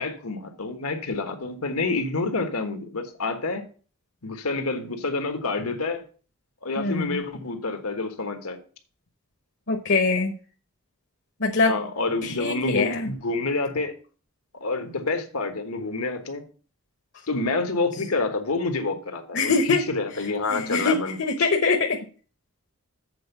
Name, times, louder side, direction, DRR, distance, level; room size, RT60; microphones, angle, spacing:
voice 1, 0.0-3.6 4.2-6.0 6.6-8.6 11.6-13.9 14.6-16.4 17.3-21.2, left 3 dB, 85° left, 1.4 m, -28 dB
voice 2, 6.8-7.2 9.7-10.3 11.4-11.8 12.2-13.1 19.3-19.8 20.5-22.0, left 4 dB, 55° left, 0.9 m, -23 dB
7.8 x 4.4 x 6.8 m
head